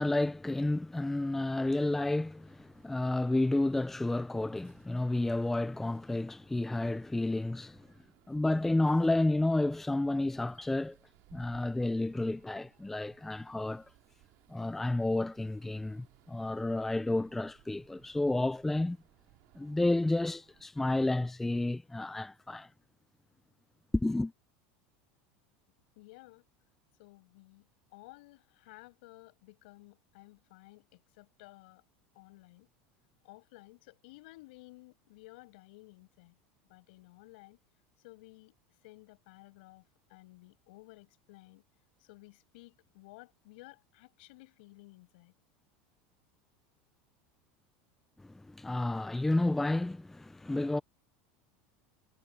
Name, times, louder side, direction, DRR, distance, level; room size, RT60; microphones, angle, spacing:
voice 1, 0.0-7.8 8.3-11.0 11.3-13.9 14.5-19.0 19.6-22.7 23.9-24.3 48.2-50.8, left 2 dB, 5° left, 0.5 m, -31 dB
sound 1, 2.2-20.7, right 25 dB, 60° right, 4.2 m, -65 dB
voice 2, 25.9-26.4 27.0-27.7 27.9-31.8 32.1-32.7 33.2-36.4 36.7-37.6 38.0-38.5 38.8-39.8 40.1-41.6 42.1-45.3, left 22 dB, 75° left, 6.6 m, -55 dB
supercardioid pair, 150°, 5 cm